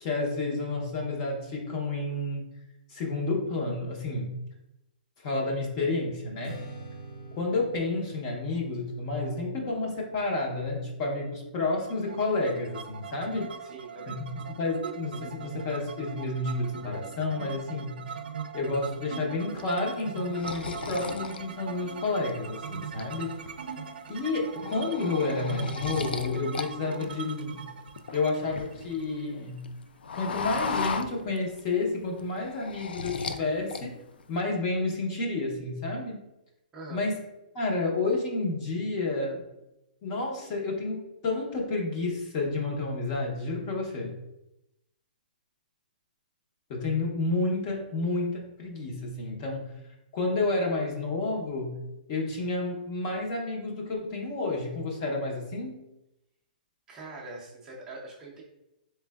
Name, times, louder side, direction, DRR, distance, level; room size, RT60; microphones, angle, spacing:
voice 1, 0.0-2.4 2.9-4.4 5.2-6.6 7.4-13.5 14.1-18.0 18.5-23.3 24.1-27.6 28.1-29.6 30.1-34.0 34.3-36.2 36.9-37.2 37.5-39.4 40.0-44.2 46.7-49.7 50.1-51.8 52.1-55.8, left 3 dB, 30° left, -1 dB, 0.7 m, -30 dB
Strum, 6.4-12.7, right 1 dB, 55° left, 1.3 m, -46 dB
sound 1, 11.9-29.6, right 6 dB, 75° right, 0.4 m, -41 dB
voice 2, 13.6-14.2 36.7-37.1 56.9-58.4, right 2 dB, 10° right, -5 dB, 0.5 m, -43 dB
sound 2, 19.6-22.3 22.7-23.5 23.9-24.1 24.4-26.7 27.0-29.0 29.4-31.7 32.0-33.4 33.7-34.3, left 5 dB, 90° left, 0.4 m, -35 dB
3.6 x 3.2 x 2.3 m, 0.90 s
hypercardioid pair, 165°, 5 cm